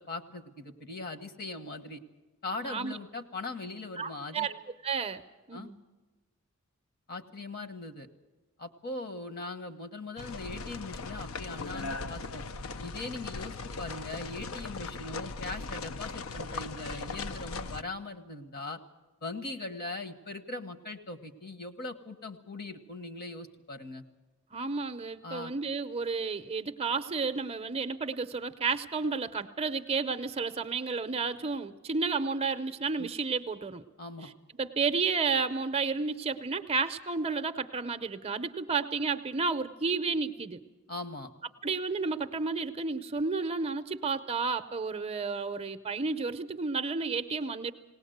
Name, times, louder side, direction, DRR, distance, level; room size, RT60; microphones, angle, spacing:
voice 1, 0.0-2.0 2.4-4.5 5.5-5.7 7.1-8.1 8.6-12.4 12.8-18.8 19.2-24.0 25.2-25.5 33.0-33.1 34.0-34.3 40.9-41.3, left 2 dB, 45° left, 9 dB, 1.1 m, -40 dB
voice 2, 2.6-3.0 4.0-4.5 4.8-5.2 5.5-5.8 24.5-33.8 34.2-34.3 34.6-40.6 41.6-47.7, right 4 dB, 30° right, 10 dB, 0.6 m, -31 dB
sound 1, 10.2-17.8, left 3 dB, 70° left, 0.6 m, -39 dB
19.5 x 18.5 x 7.9 m, 1.2 s
head